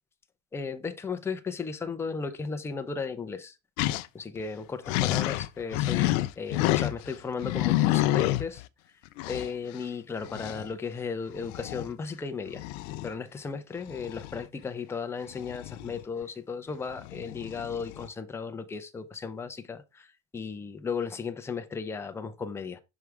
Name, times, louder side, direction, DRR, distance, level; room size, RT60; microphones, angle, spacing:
voice 1, 0.5-3.6 4.1-8.6 9.3-12.6 13.0-22.8, left 5 dB, 5° left, 0.4 m, -35 dB
sound 1, 3.8-4.1 4.4-4.5 4.9-7.1 7.4-8.7 9.2-9.5 10.2-10.7 11.4-11.9 12.5-13.1 13.9-14.5 15.3-16.2 16.9-18.1, left 16 dB, 75° left, 0.6 m, -29 dB
6.0 x 4.8 x 3.4 m
supercardioid pair, 125°, 39 cm